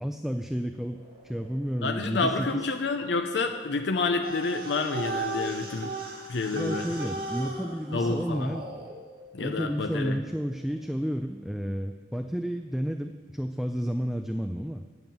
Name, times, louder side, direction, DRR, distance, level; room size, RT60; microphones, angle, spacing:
voice 1, 0.0-2.6 6.5-8.7 9.4-14.8, equal, ahead, 6 dB, 0.3 m, -31 dB
sound 1, 0.9-5.6 5.9-6.0 6.6-11.4, left 1 dB, 20° right, 3.9 m, -53 dB
voice 2, 1.8-5.9 6.3-6.9 7.9-8.5 9.3-10.2, left 3 dB, 80° left, 5 dB, 0.7 m, -29 dB
sound 2, 4.2-8.9, right 2 dB, 60° right, 2.0 m, -36 dB
9.2 x 7.9 x 7.1 m, 1.4 s
head